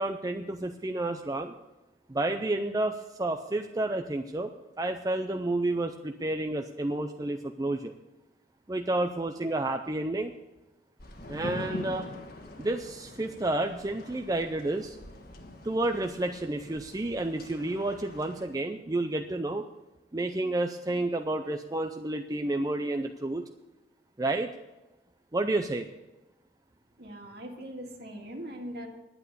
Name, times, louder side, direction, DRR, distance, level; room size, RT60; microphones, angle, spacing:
voice 1, 0.0-1.5 2.1-4.5 4.8-7.9 8.7-10.3 11.3-12.1 12.6-15.0 15.6-19.6 20.1-23.4 24.2-24.5 25.3-25.9, right 2 dB, 20° right, 5 dB, 0.5 m, -30 dB
sound 1, 11.0-18.5, left 1 dB, 55° left, 1.5 m, -43 dB
voice 2, 27.0-28.9, equal, 60° right, 2 dB, 2.0 m, -41 dB
11.0 x 8.9 x 6.7 m, 1.0 s
head